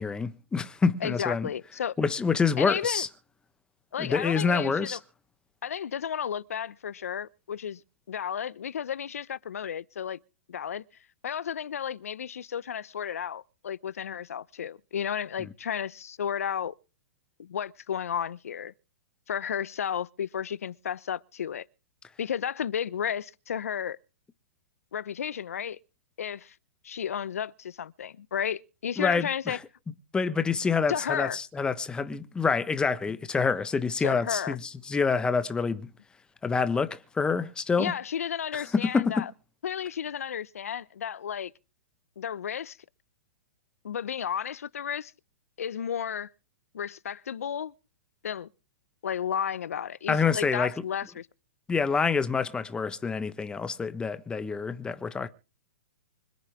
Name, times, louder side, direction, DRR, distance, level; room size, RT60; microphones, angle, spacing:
voice 1, 0.0-1.5 2.0-3.1 4.0-5.0 29.0-29.6 30.1-35.9 36.4-37.9 38.5-39.3 50.1-50.7 51.7-55.3, left 5 dB, 10° left, 1.3 m, -27 dB
voice 2, 1.0-1.9 2.6-3.0 3.9-5.0 5.6-7.8 8.1-10.2 10.5-10.8 11.2-16.8 17.4-18.7 19.3-21.6 22.2-24.0 24.9-25.8 26.2-26.5 26.8-29.6 30.9-31.4 34.0-34.6 37.8-39.3 39.6-41.5 42.2-42.8 43.8-45.1 45.6-46.3 46.7-47.7 48.2-48.5 49.0-51.3, left 8 dB, 75° left, 0.8 m, -33 dB
25.5 x 9.6 x 3.6 m
hypercardioid pair, 125°, 8 cm